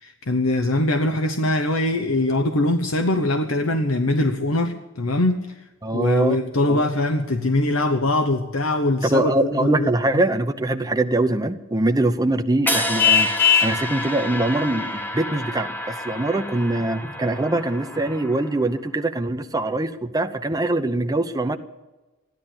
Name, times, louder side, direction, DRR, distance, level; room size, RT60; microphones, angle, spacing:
voice 1, 0.0-5.5 5.9-10.0, left 1 dB, 80° left, 6 dB, 1.0 m, -22 dB
voice 2, 5.8-6.4 6.7-6.8 9.1-13.3 13.6-21.6, right 2 dB, 20° right, 6 dB, 0.7 m, -23 dB
Ting Becken Long, 12.7-18.8, equal, 10° left, 1.2 m, -30 dB
Vehicle horn car horn honking, 13.0-13.8, left 8 dB, 50° left, 0.9 m, -17 dB
14.5 x 11.0 x 8.9 m, 1.1 s
head